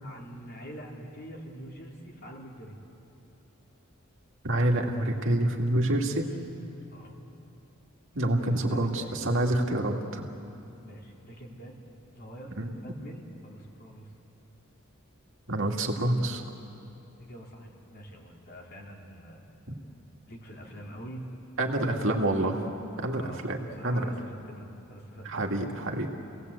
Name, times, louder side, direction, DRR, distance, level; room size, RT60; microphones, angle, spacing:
voice 1, 0.0-2.8 6.9-7.2 8.5-9.4 10.8-11.8 12.1-14.1 17.2-19.4 20.3-21.3 21.7-22.1 22.4-22.5 23.2-23.4 23.8-25.4, equal, 50° left, -1 dB, 3.6 m, -45 dB
voice 2, 4.4-6.3 8.1-10.3 12.6-12.7 15.5-16.4 21.6-22.6 23.0-23.6 23.8-24.0 25.2-26.1, right 1 dB, 65° right, 1 dB, 2.2 m, -27 dB
30.0 x 18.5 x 8.2 m, 2.8 s
head